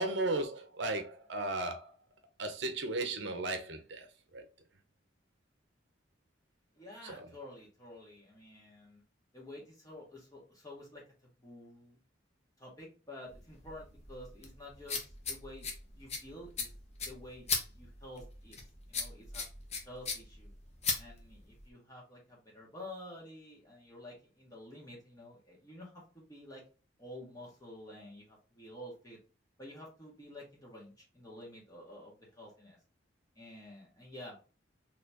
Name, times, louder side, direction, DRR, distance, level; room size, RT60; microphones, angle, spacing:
voice 1, 0.0-1.9 2.4-4.4 7.0-7.3, right 2 dB, 65° right, 0.7 m, -35 dB
voice 2, 6.7-9.0 9.3-11.0 11.3-12.0 12.6-15.7 15.9-16.8 17.0-17.5 17.7-18.6 18.9-19.4 19.8-20.5 21.0-26.6 27.0-29.2 29.6-32.8 33.3-34.4, left 1 dB, 20° left, 1.6 m, -50 dB
sound 1, 13.3-21.7, left 4 dB, 35° left, 0.8 m, -39 dB
4.1 x 2.9 x 2.8 m
head